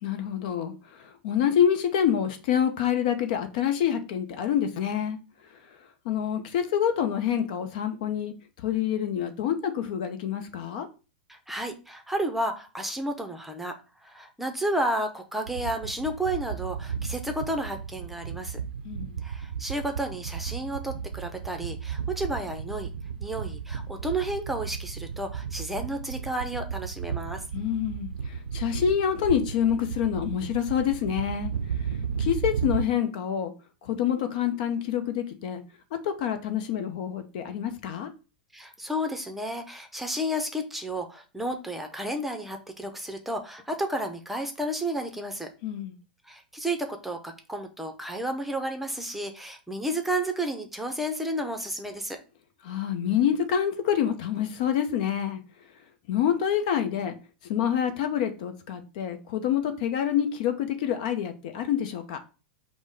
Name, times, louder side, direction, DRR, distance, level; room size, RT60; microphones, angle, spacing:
voice 1, 0.0-5.2 6.0-10.9 18.8-19.2 27.5-31.5 31.8-33.5 33.8-35.6 35.9-38.1 45.6-46.0 52.6-55.4 56.1-57.2 57.4-62.2, left 9 dB, 60° left, 8 dB, 0.7 m, -27 dB
voice 2, 11.3-13.7 14.0-18.6 19.2-22.9 23.2-27.4 38.5-45.5 46.2-52.2, right 1 dB, 5° right, 5 dB, 0.7 m, -32 dB
sound 1, 15.5-32.8, right 7 dB, 80° right, 0.5 m, -34 dB
5.3 x 2.2 x 4.6 m, 0.33 s
hypercardioid pair, 95°, 5 cm